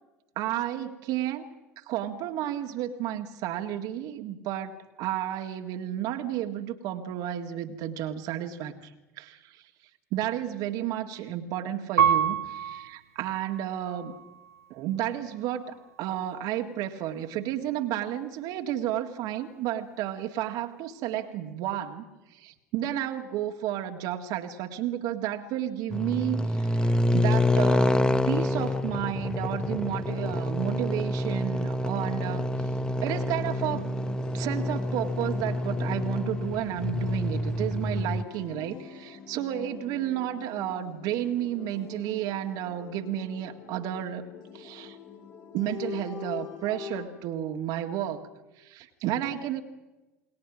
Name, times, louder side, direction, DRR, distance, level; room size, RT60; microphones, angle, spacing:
voice 1, 0.4-1.4 1.8-8.7 9.2-9.5 10.1-14.1 14.7-15.7 16.0-22.0 22.3-32.7 33.0-33.8 34.3-44.3 44.5-45.0 45.5-48.2 48.6-49.6, right 11 dB, 55° right, 5 dB, 1.9 m, -32 dB
Piano, 12.0-14.7 15.3-16.1, right 8 dB, 85° right, 1.3 m, -29 dB
sound 1, 25.9-38.2, left 1 dB, 10° left, 1.1 m, -27 dB
sound 2, 33.3-47.1, left 8 dB, 55° left, 7.0 m, -44 dB
29.0 x 21.0 x 6.2 m, 1.0 s
hypercardioid pair, 70°, 8 cm